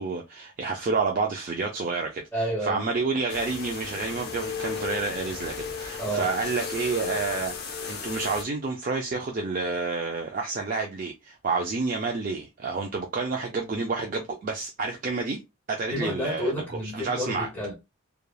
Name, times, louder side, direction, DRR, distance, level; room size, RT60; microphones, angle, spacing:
voice 1, 0.0-15.4 15.7-16.5 16.9-17.5, right 4 dB, 40° right, 0.4 m, -29 dB
voice 2, 2.3-2.9 6.0-6.3 15.9-17.7, equal, 10° left, 1.1 m, -30 dB
sound 1, 3.3-8.4, left 6 dB, 45° left, 0.5 m, -35 dB
3.2 x 2.2 x 2.2 m
head